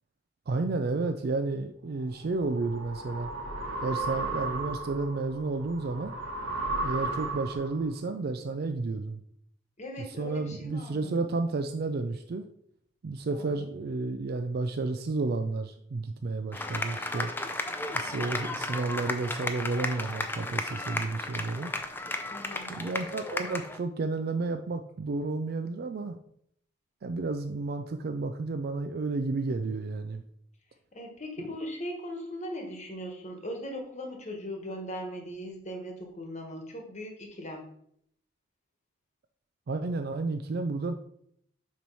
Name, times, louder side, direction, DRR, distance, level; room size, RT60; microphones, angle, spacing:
voice 1, 0.5-3.3 3.8-6.1 6.8-9.2 10.0-12.5 13.0-17.3 17.9-21.7 22.7-26.2 27.0-30.2 39.7-40.9, right 3 dB, 50° right, 7 dB, 0.4 m, -31 dB
sound 1, 2.0-7.8, right 2 dB, 70° right, 1.4 m, -35 dB
voice 2, 9.8-11.1 13.3-13.7 22.3-22.8 30.9-37.6, equal, 35° left, 2 dB, 1.2 m, -39 dB
sound 2, 16.5-23.8, left 2 dB, 10° left, 0.5 m, -34 dB
7.2 x 3.1 x 5.4 m, 0.70 s
head